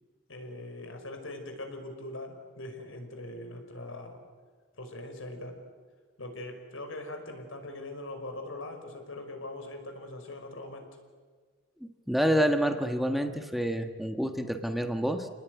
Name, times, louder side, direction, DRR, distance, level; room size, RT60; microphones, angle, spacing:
voice 1, 0.3-4.2 4.8-5.6 6.2-11.0, left 2 dB, 80° left, 5 dB, 5.4 m, -41 dB
voice 2, 12.1-15.3, equal, ahead, 6 dB, 1.3 m, -28 dB
28.5 x 19.5 x 9.5 m, 1.5 s
head